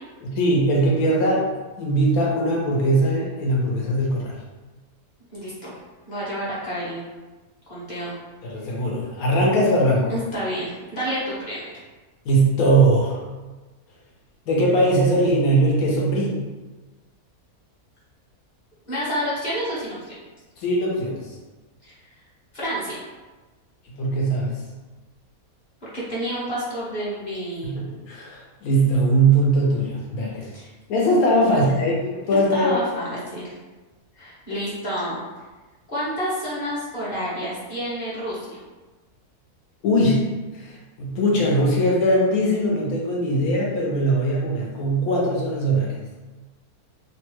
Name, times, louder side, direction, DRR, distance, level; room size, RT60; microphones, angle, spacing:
voice 1, 0.2-1.5 1.8-4.4 8.4-10.1 12.2-13.2 14.5-16.4 20.6-21.3 23.8-24.6 27.6-30.5 30.9-32.7 39.8-40.3 40.5-46.0, right 1 dB, 75° left, -3 dB, 1.2 m, -20 dB
voice 2, 5.3-5.8 6.1-7.0 7.7-8.1 10.1-11.7 18.9-20.0 21.8-21.9 22.5-23.0 25.9-27.8 30.5-30.7 31.5-31.8 32.5-33.5 34.1-35.2 35.9-38.6, equal, 35° left, -9 dB, 1.0 m, -29 dB
3.1 x 2.3 x 3.0 m, 1.2 s
omnidirectional pair, 1.6 m